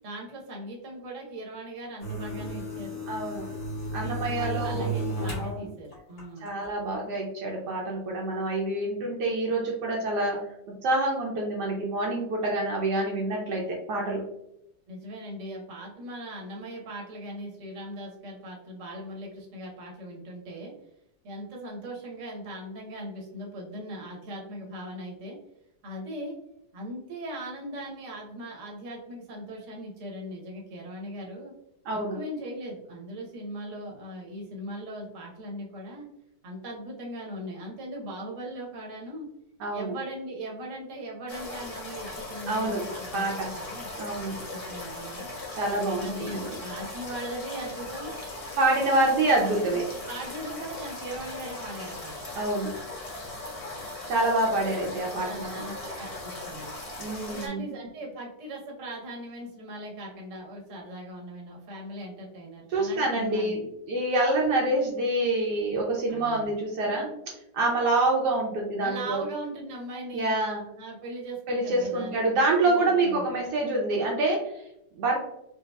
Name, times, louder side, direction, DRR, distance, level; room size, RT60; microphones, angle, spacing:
voice 1, 0.0-3.0 4.0-6.5 14.9-20.7 21.2-25.4 25.8-26.4 26.7-31.5 32.1-36.0 36.4-39.3 39.7-43.3 43.6-43.9 44.3-45.3 46.0-48.2 48.5-48.6 49.0-49.2 49.7-52.3 55.1-56.7 57.3-63.5 66.1-66.5 68.8-70.4 70.8-73.3, right 1 dB, 50° right, -2 dB, 1.1 m, -39 dB
sound 1, 2.0-5.5 5.9-6.7, right 1 dB, 55° left, 2.0 m, -33 dB
voice 2, 3.1-3.5 3.9-5.0 5.4-5.6 6.4-10.4 10.8-14.2 31.8-32.2 39.6-39.9 42.5-42.8 43.1-43.5 44.0-44.4 45.5-46.5 48.5-49.8 52.4-52.7 54.1-55.6 57.0-57.6 62.7-67.1 67.5-69.2 70.1-70.7 71.5-74.4 75.0-75.3, right 2 dB, 70° right, -2 dB, 1.2 m, -26 dB
sound 2, 41.3-57.5, left 2 dB, 35° left, 0.6 m, -39 dB
4.5 x 2.4 x 2.2 m, 0.80 s
omnidirectional pair, 1.9 m